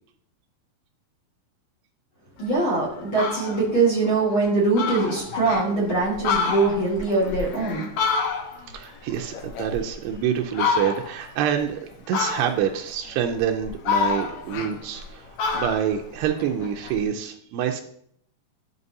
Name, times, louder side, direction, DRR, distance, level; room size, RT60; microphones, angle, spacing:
voice 1, 2.4-7.9, right 3 dB, 45° left, -6 dB, 1.8 m, -22 dB
Fowl, 2.5-2.6 3.0-3.6 4.1-4.2 4.4-4.5 4.8-5.7 6.1-8.7 9.1-10.1 10.5-11.2 12.1-12.8 13.3-15.1 15.4-17.0, left 5 dB, 80° left, 1.6 m, -27 dB
voice 2, 8.7-17.8, right 9 dB, 85° right, 3 dB, 2.7 m, -27 dB
11.0 x 5.9 x 2.7 m, 0.67 s
omnidirectional pair, 4.6 m